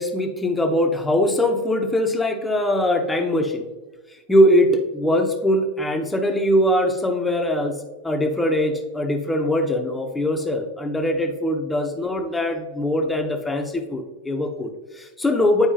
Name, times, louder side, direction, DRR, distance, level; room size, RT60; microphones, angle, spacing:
voice 1, 0.0-3.7 4.3-15.7, left 1 dB, 10° left, 4 dB, 0.8 m, -22 dB
10.0 x 4.6 x 2.8 m, 1.2 s
figure-of-eight pair, 90°, 0 cm